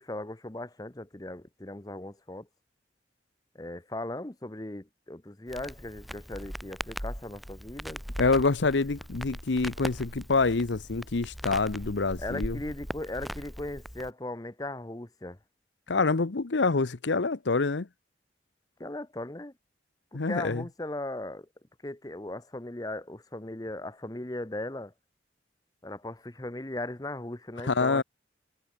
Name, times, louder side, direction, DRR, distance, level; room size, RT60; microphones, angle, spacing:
voice 1, 0.0-2.5 3.5-8.0 12.2-15.4 18.8-19.5 20.1-21.5 21.8-24.9 25.8-28.0, left 1 dB, 20° left, 1.0 m, -38 dB
Crackle, 5.5-14.1, equal, ahead, 0.5 m, -40 dB
voice 2, 8.2-12.6 15.9-17.9 20.1-20.6 27.6-28.0, left 3 dB, 85° left, 0.9 m, -26 dB
head